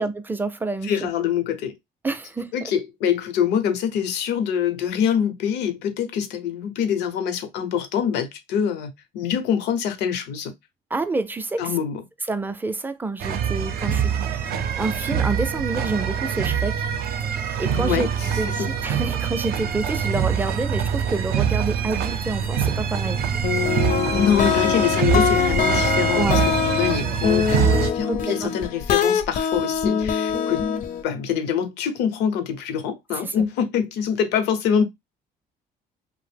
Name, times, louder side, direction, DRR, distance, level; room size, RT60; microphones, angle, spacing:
voice 1, 0.0-1.1 2.0-2.7 10.9-11.6 12.3-14.1 14.7-16.7 17.6-18.1 18.4-23.2 26.1-26.4 28.1-28.5 33.2-33.5, right 3 dB, 10° right, 0.4 m, -28 dB
voice 2, 0.8-1.8 2.5-10.5 11.6-12.0 17.8-18.7 24.1-30.6 31.0-34.8, left 8 dB, 90° left, 0.7 m, -25 dB
sound 1, 13.2-27.9, right 7 dB, 65° right, 0.5 m, -24 dB
sound 2, 23.4-31.0, left 7 dB, 50° left, 0.5 m, -23 dB
2.6 x 2.0 x 3.3 m
cardioid pair, 110°, 17 cm